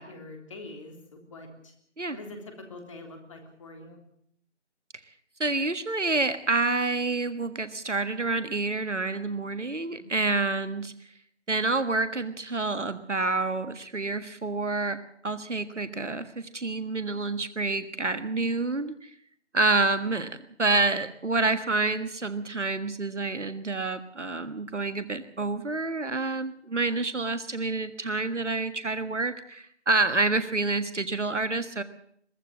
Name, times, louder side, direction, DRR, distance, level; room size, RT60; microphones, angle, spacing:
voice 1, 0.0-1.7 2.1-4.0 9.9-10.2, left 2 dB, 25° left, 4 dB, 3.5 m, -44 dB
voice 2, 5.4-10.9 11.5-15.0 15.2-19.1 19.5-20.3 20.6-31.8, right 3 dB, 80° right, 11 dB, 1.6 m, -28 dB
23.0 x 15.0 x 7.6 m, 0.66 s
figure-of-eight pair, 160°, 35 cm